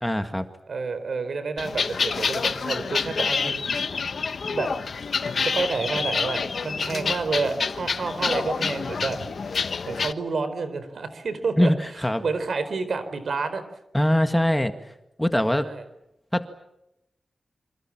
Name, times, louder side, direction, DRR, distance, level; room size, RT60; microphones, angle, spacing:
voice 1, 0.0-0.5 11.6-12.2 13.9-14.7 15.2-15.7 16.3-16.5, left 1 dB, 5° left, 8 dB, 1.9 m, -22 dB
voice 2, 0.7-3.7 4.5-4.7 5.4-9.2 9.9-11.7 12.2-13.6 15.6-15.8, right 4 dB, 70° right, 11 dB, 4.4 m, -29 dB
sound 1, 1.6-10.1, left 5 dB, 65° left, 1.2 m, -27 dB
27.0 x 26.5 x 7.5 m, 0.83 s
wide cardioid pair, 100°, 0 cm